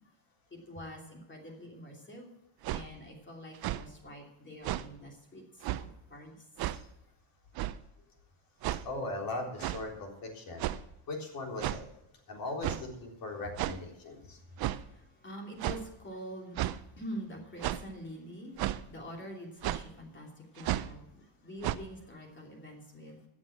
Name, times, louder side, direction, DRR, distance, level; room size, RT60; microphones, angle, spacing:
voice 1, 0.5-2.3 2.7-6.4 14.3-23.2, equal, 25° left, 1 dB, 2.9 m, -46 dB
sound 1, 2.6-2.8 3.5-3.8 4.6-4.9 5.6-5.8 6.6-6.8 7.6-7.8 8.6-8.8 9.6-9.8 10.6-10.9 11.6-11.8 12.6-12.8 13.6-13.8 14.6-14.8 15.6-15.8 16.6-16.8 17.6-17.9 18.6-18.8 19.6-19.8 20.6-20.9 21.6-21.8, right 14 dB, 55° right, 0.7 m, -33 dB
voice 2, 8.8-10.7 11.1-11.8 12.3-14.4, left 2 dB, 50° left, 1 dB, 3.9 m, -39 dB
14.0 x 7.5 x 7.4 m, 0.87 s
cardioid pair, 130°, 45 cm